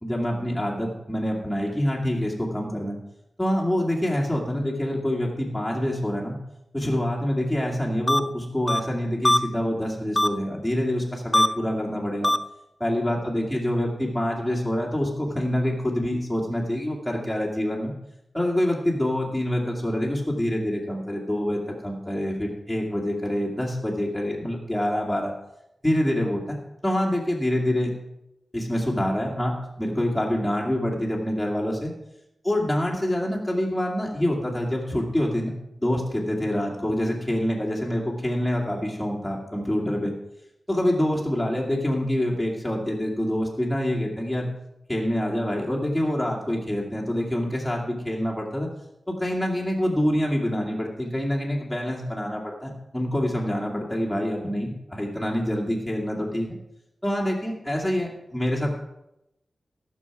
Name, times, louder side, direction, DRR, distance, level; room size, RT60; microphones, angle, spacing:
voice 1, 0.0-3.0 3.4-6.4 6.7-12.3 12.8-17.9 18.3-25.3 25.8-26.6 26.8-27.9 28.5-31.9 32.4-40.1 40.7-44.5 44.9-48.7 49.1-56.6 57.0-58.7, left 1 dB, ahead, -3 dB, 2.1 m, -26 dB
sound 1, 8.1-8.2 8.7-8.8 9.2-9.4 10.2-10.3 11.3-11.5 12.2-12.4, left 1 dB, 20° left, 0.4 m, -19 dB
14.5 x 6.4 x 6.0 m, 0.85 s
wide cardioid pair, 105°, 0 cm